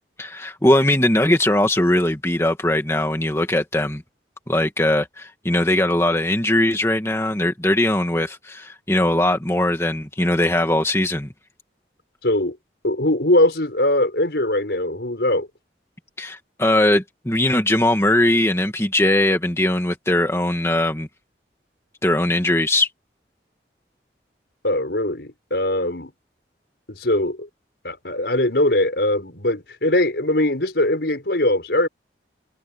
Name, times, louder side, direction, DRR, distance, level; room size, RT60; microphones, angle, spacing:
voice 1, 0.2-4.0 4.5-11.3 16.2-21.1 22.0-22.9, left 1 dB, 15° left, 1.8 m, -20 dB
voice 2, 12.2-12.6 12.8-15.5 24.6-26.1 26.9-27.5 27.8-31.9, left 1 dB, 75° left, 4.9 m, -21 dB
head